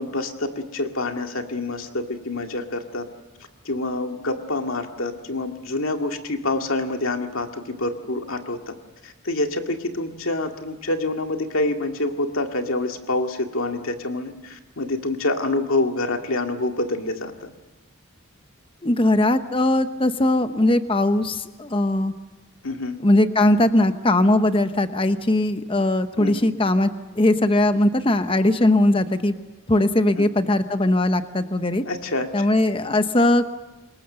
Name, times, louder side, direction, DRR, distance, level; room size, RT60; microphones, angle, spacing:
voice 1, 0.0-3.1 3.7-8.8 9.0-17.5 22.6-23.0 26.2-26.5 30.2-30.3 31.8-32.5, left 2 dB, 65° left, 4 dB, 2.2 m, -27 dB
voice 2, 18.8-22.1 23.0-26.9 27.2-29.3 29.7-31.8 32.3-33.5, left 1 dB, 25° left, 10 dB, 0.9 m, -20 dB
27.0 x 22.0 x 6.8 m, 1.1 s
head